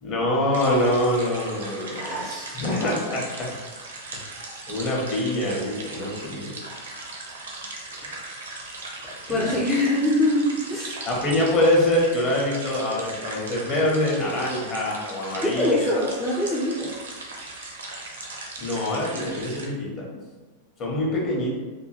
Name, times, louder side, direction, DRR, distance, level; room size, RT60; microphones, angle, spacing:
voice 1, 0.0-2.2 2.5-3.5 4.7-6.5 8.0-8.2 9.3-9.5 11.1-16.0 18.6-20.0 20.8-21.5, left 1 dB, 35° left, -3 dB, 0.8 m, -25 dB
sound 1, 0.5-19.7, right 2 dB, 65° right, 0.5 m, -38 dB
voice 2, 2.0-2.5 9.3-11.0 15.4-17.0, left 1 dB, 10° left, -5 dB, 0.4 m, -24 dB
2.7 x 2.2 x 2.9 m, 1.3 s
figure-of-eight pair, 90°, 0 cm